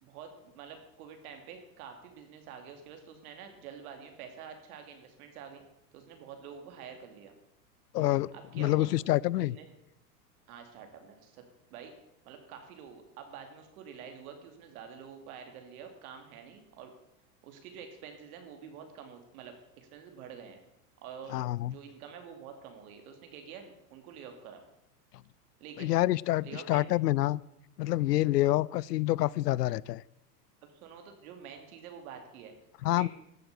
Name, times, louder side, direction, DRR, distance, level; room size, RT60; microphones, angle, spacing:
voice 1, 0.0-5.6 5.9-7.3 8.3-8.9 9.4-9.7 10.5-11.4 11.7-11.9 12.2-16.9 17.4-20.6 21.0-21.4 21.6-24.7 25.6-26.0 26.4-26.8 30.8-32.5 32.9-33.1, right 7 dB, 65° right, 5 dB, 2.8 m, -47 dB
voice 2, 7.9-9.6 21.3-21.7 25.8-27.4 27.8-30.0 32.8-33.1, left 16 dB, 85° left, 23 dB, 0.6 m, -27 dB
14.5 x 8.0 x 6.7 m, 0.85 s
hypercardioid pair, 115°, 47 cm